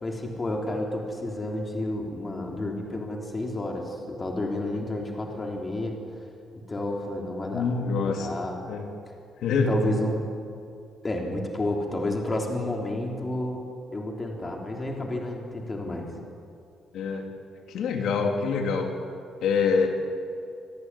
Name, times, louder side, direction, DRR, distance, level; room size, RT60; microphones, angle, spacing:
voice 1, 0.0-6.0 6.7-7.7 8.0-8.6 9.1-9.2 9.7-10.2 11.0-13.6 13.9-16.1, left 1 dB, 20° left, 1 dB, 3.6 m, -31 dB
voice 2, 7.5-8.3 8.7-8.9 9.4-9.9 16.9-17.3 17.7-18.9 19.4-20.0, left 4 dB, 65° left, 3 dB, 2.8 m, -25 dB
27.0 x 19.0 x 9.9 m, 2.5 s
cardioid pair, 175°, 0 cm